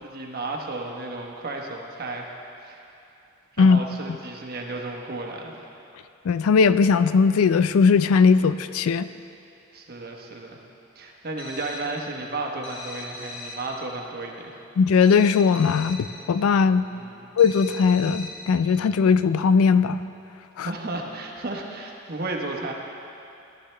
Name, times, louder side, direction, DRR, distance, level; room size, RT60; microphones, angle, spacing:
voice 1, 0.0-2.3 2.6-2.8 3.6-5.6 9.7-10.6 11.0-14.6 16.9-17.3 20.6-22.7, right 2 dB, 45° right, 1 dB, 1.1 m, -33 dB
voice 2, 6.3-9.1 14.8-16.9 17.4-20.0 20.6-20.7, left 5 dB, 85° left, 13 dB, 0.3 m, -19 dB
sound 1, 11.4-12.0 12.6-13.7 15.0-16.1 17.4-18.5, left 3 dB, 30° left, 1.5 m, -39 dB
14.5 x 11.5 x 3.3 m, 2.8 s
head